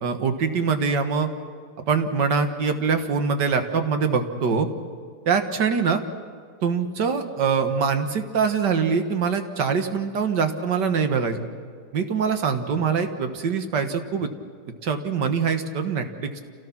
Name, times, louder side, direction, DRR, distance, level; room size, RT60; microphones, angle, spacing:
voice 1, 0.0-1.3 1.8-4.7 5.3-6.0 6.6-11.4 11.9-14.3 14.8-16.4, right 5 dB, 55° right, 7 dB, 1.9 m, -23 dB
28.0 x 17.5 x 6.0 m, 2.2 s
omnidirectional pair, 2.4 m